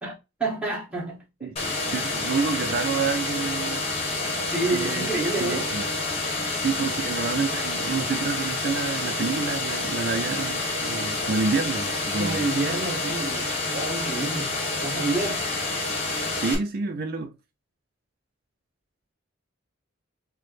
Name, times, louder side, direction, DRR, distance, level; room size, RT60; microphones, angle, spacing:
voice 1, 0.0-1.8 4.5-5.7 7.0-7.1 12.2-15.4, right 2 dB, 5° right, 1.5 m, -29 dB
voice 2, 1.4-3.8 4.7-5.1 5.4-5.9 6.5-12.5 16.4-17.4, right 4 dB, 45° right, 0.4 m, -28 dB
sound 1, 1.6-16.6, left 2 dB, 30° left, 1.1 m, -28 dB
4.5 x 2.1 x 3.0 m
head